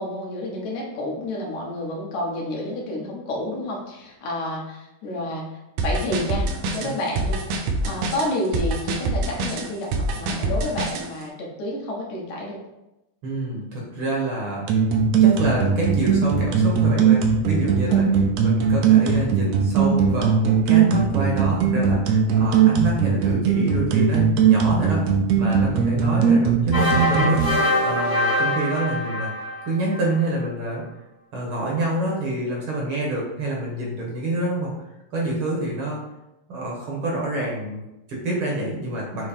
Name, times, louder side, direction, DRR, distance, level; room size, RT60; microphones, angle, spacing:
voice 1, 0.0-5.4 5.8-6.5 6.7-7.4 7.8-12.6 17.9-18.1, left 1 dB, 75° left, -2 dB, 2.6 m, -29 dB
sound 1, 5.8-11.1, right 2 dB, 90° right, 2.3 m, -25 dB
voice 2, 13.2-14.7 15.2-18.1 18.4-25.1 25.4-30.8 31.3-34.7 35.1-36.0 36.5-39.3, right 2 dB, 55° right, -3 dB, 1.7 m, -27 dB
sound 2, 14.7-27.5, right 7 dB, 75° right, 1.9 m, -18 dB
sound 3, 26.7-30.2, equal, 25° left, 1.0 m, -24 dB
7.3 x 3.1 x 4.3 m, 0.93 s
omnidirectional pair, 3.4 m